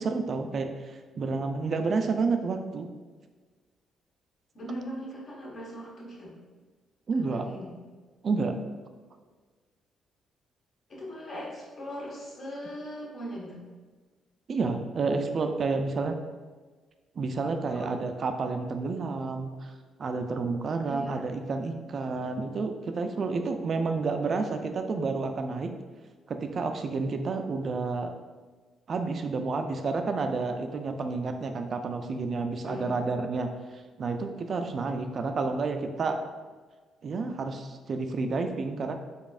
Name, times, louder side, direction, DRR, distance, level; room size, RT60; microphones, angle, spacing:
voice 1, 0.0-2.9 7.1-7.5 8.2-8.6 14.5-16.2 17.2-19.7 20.0-25.7 26.3-28.1 28.9-36.2 37.0-39.0, right 4 dB, 50° right, 6 dB, 0.3 m, -30 dB
voice 2, 4.5-6.3 7.2-7.7 10.9-13.6 17.7-18.0 20.8-21.2 32.6-32.9, equal, 50° left, -4 dB, 1.2 m, -39 dB
4.0 x 3.5 x 2.4 m, 1.4 s
cardioid pair, 90°, 0 cm